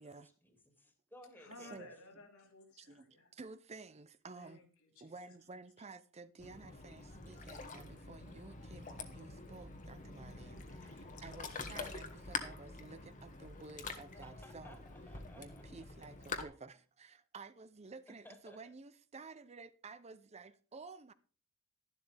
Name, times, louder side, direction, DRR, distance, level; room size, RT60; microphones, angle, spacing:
voice 1, 0.4-1.8 14.1-15.9 16.2-16.3 18.2-18.6, left 1 dB, 10° left, 2.2 m, -58 dB
voice 2, 1.3-3.3 4.3-5.4, left 1 dB, 85° left, 3.6 m, -56 dB
voice 3, 2.8-4.6 5.0-14.8 15.4-21.1, right 3 dB, 30° right, 0.6 m, -53 dB
Ocean, 6.4-16.4, left 4 dB, 40° left, 1.4 m, -46 dB
12.5 x 11.5 x 3.4 m
head